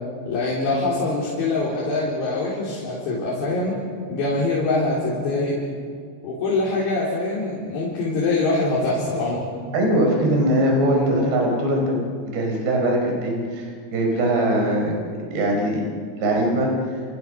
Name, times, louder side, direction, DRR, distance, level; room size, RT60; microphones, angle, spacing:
voice 1, 0.3-3.8 4.1-5.6 6.2-9.4 10.9-11.1, left 2 dB, 75° left, -6 dB, 6.2 m, -24 dB
voice 2, 9.7-12.0 12.3-14.9 15.3-15.8 16.2-16.7, right 1 dB, 70° right, 1 dB, 6.9 m, -21 dB
30.0 x 29.0 x 6.5 m, 2.1 s
omnidirectional pair, 5.0 m